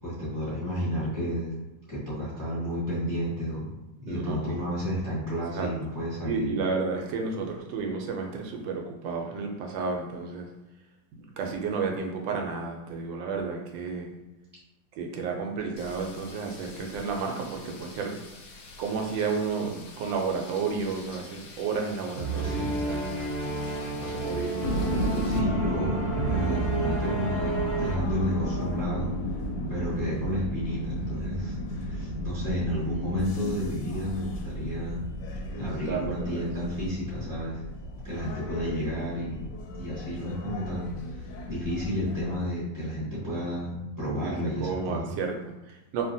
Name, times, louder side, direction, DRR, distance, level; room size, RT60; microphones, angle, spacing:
voice 1, 0.0-1.5 1.9-3.7 4.0-6.5 22.4-22.7 25.2-26.0 26.3-29.1 29.7-35.0 35.6-37.6 38.0-39.5 39.7-45.0, equal, 15° left, -9 dB, 0.7 m, -31 dB
voice 2, 4.1-4.6 5.5-5.7 6.2-10.5 11.1-14.1 15.0-18.3 18.8-23.2 24.0-24.6 35.5-36.5 44.1-44.3 44.6-46.1, right 4 dB, 85° right, 2 dB, 1.3 m, -32 dB
sound 1, 15.8-25.4, left 3 dB, 70° left, 1.0 m, -47 dB
sound 2, 22.2-28.0, right 3 dB, 50° right, 0.8 m, -31 dB
sound 3, 24.6-42.4, equal, 85° left, 1.3 m, -33 dB
2.9 x 2.6 x 2.6 m, 1.0 s
omnidirectional pair, 2.0 m